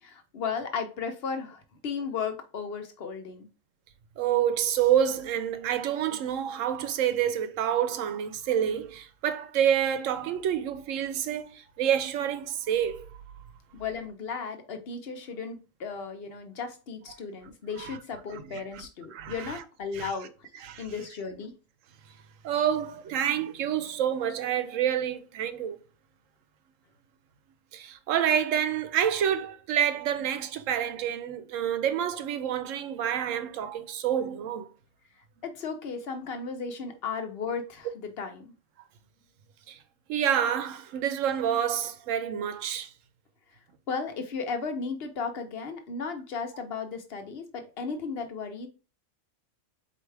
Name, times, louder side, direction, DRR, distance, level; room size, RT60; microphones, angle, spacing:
voice 1, 0.0-3.5 13.7-20.5 20.8-21.5 35.4-38.5 43.9-48.7, left 5 dB, 55° left, 1.0 m, -35 dB
voice 2, 4.2-13.1 17.8-18.0 18.5-18.6 19.1-19.6 19.9-20.1 20.6-20.8 22.4-25.8 27.7-34.7 39.7-39.8 40.1-42.9, right 9 dB, 90° right, 1.0 m, -28 dB
4.4 x 2.8 x 3.2 m
omnidirectional pair, 1.3 m